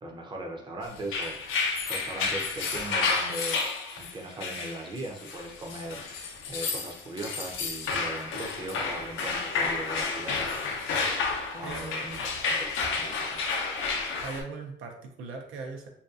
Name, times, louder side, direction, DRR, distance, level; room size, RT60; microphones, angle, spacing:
voice 1, 0.0-1.4 1.9-3.6 4.0-6.0 6.5-10.4 11.5-12.7 13.0-13.4, right 1 dB, 25° right, 2 dB, 0.5 m, -39 dB
sound 1, 1.0-14.4, left 4 dB, 85° left, 0.5 m, -31 dB
voice 2, 11.6-11.9 14.2-15.9, right 4 dB, 90° right, 2 dB, 0.5 m, -39 dB
2.6 x 2.3 x 2.4 m, 0.67 s
cardioid pair, 90°, 20 cm